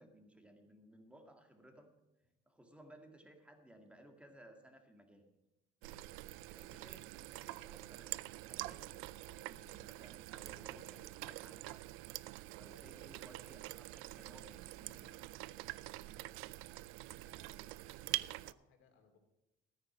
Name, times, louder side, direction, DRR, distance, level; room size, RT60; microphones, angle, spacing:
voice 1, 0.0-1.9 2.5-5.3 6.5-12.0 12.6-15.3, right 1 dB, 5° right, 4 dB, 2.0 m, -60 dB
sound 1, 5.8-18.5, right 18 dB, 90° right, 0.4 m, -46 dB
voice 2, 17.2-19.2, left 5 dB, 70° left, 4 dB, 2.9 m, -69 dB
13.5 x 9.4 x 5.9 m, 0.93 s
cardioid pair, 120°, 21 cm